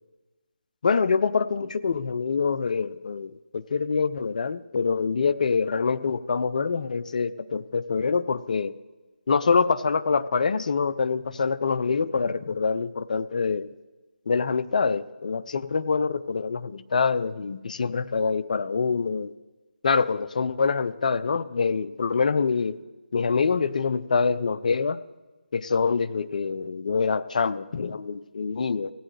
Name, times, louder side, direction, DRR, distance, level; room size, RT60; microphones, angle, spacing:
voice 1, 0.8-8.7 9.3-13.7 14.3-19.3 19.8-22.8 23.1-25.0 25.5-28.9, left 5 dB, 45° left, 14 dB, 0.5 m, -25 dB
16.5 x 9.6 x 3.2 m, 1.2 s
figure-of-eight pair, 155°, 6 cm